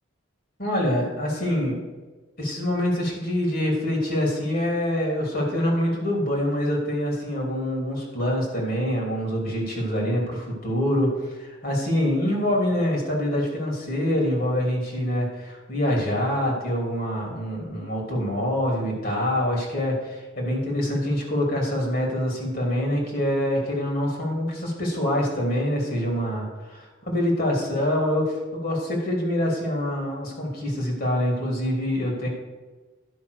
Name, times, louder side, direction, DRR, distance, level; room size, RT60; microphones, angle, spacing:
voice 1, 0.6-1.8 2.4-32.3, left 1 dB, 50° left, 0 dB, 3.0 m, -25 dB
11.0 x 5.9 x 6.5 m, 1.2 s
head